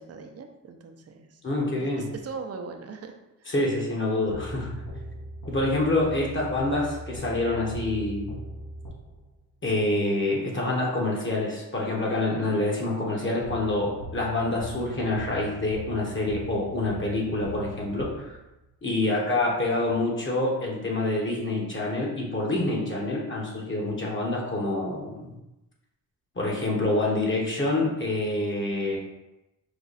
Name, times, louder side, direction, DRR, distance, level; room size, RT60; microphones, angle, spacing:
voice 1, 0.0-1.4 1.8-3.1 3.4-3.5 19.1-19.3, right 5 dB, 45° right, 5 dB, 0.6 m, -40 dB
voice 2, 1.4-2.0 3.5-4.8 5.5-8.3 9.6-18.4 18.8-25.3 26.4-29.0, left 2 dB, 35° left, -2 dB, 1.1 m, -27 dB
sound 1, 4.3-9.4 13.4-18.6, right 1 dB, 70° left, 1.2 m, -40 dB
5.0 x 2.3 x 4.0 m, 0.96 s
cardioid pair, 95°, 34 cm